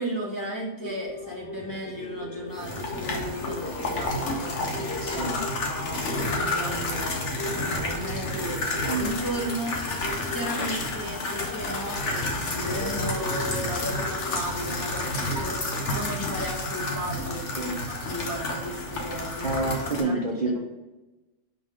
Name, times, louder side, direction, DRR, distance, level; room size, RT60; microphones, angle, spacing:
voice 1, 0.0-19.5 20.0-20.6, equal, 15° left, -3 dB, 1.3 m, -35 dB
sound 1, 0.8-17.6 17.9-18.0, left 3 dB, 60° left, 0.9 m, -39 dB
sound 2, 2.5-20.0, left 2 dB, 75° left, 1.4 m, -30 dB
voice 2, 5.0-5.5 8.8-9.4 17.6-17.8 19.4-20.6, right 2 dB, 40° right, -2 dB, 0.9 m, -29 dB
5.2 x 3.9 x 4.9 m, 1.1 s
omnidirectional pair, 1.2 m